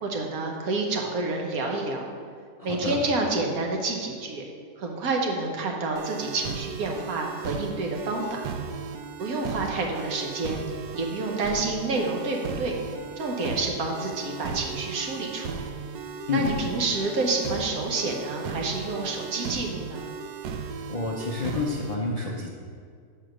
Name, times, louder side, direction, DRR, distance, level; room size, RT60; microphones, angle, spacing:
voice 1, 0.0-2.0 2.6-4.5 4.8-8.5 9.2-10.6 10.9-12.7 13.2-15.7 16.3-20.0, right 3 dB, 65° right, 1 dB, 1.4 m, -28 dB
voice 2, 2.6-2.9 16.3-16.5 20.9-22.5, left 3 dB, 70° left, -2 dB, 0.3 m, -29 dB
sound 1, 6.0-22.0, right 5 dB, 85° right, 1.1 m, -36 dB
6.4 x 4.5 x 6.4 m, 2.1 s
omnidirectional pair, 1.7 m